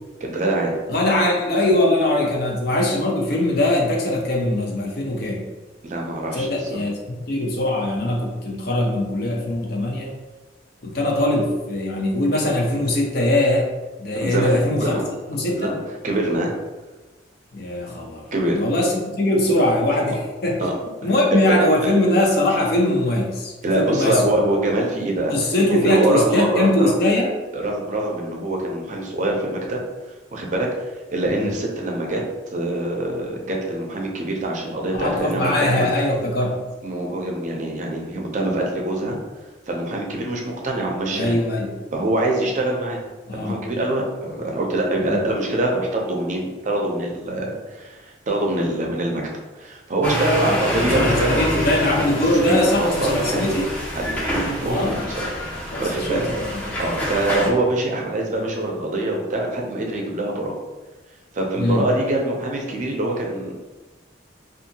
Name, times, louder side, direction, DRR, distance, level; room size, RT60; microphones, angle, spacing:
voice 1, 0.2-0.8 5.8-6.8 14.2-15.1 15.5-15.8 16.0-16.5 18.3-18.6 20.6-20.7 21.5-21.9 23.6-25.3 25.7-26.9 27.5-29.8 30.3-32.2 32.5-35.9 36.8-39.2 39.7-41.4 41.9-43.0 43.3-48.0 48.3-49.2 49.5-51.5 52.3-53.6 53.9-55.3 55.6-56.3 56.8-60.5 61.3-63.5, right 1 dB, 45° right, 0 dB, 0.5 m, -24 dB
voice 2, 0.9-5.4 6.3-6.9 7.3-10.1 10.8-13.7 14.0-15.0 15.3-15.7 17.5-18.2 18.5-20.6 21.0-24.2 25.3-27.3 31.4-31.5 35.0-36.6 41.1-41.7 43.3-43.6 45.1-45.2 50.5-53.6 54.6-55.1 55.7-56.7 61.6-61.9, left 1 dB, 60° left, -1 dB, 0.6 m, -21 dB
sound 1, 50.0-57.5, equal, 10° left, 0.6 m, -27 dB
2.7 x 2.4 x 2.7 m, 1.2 s
head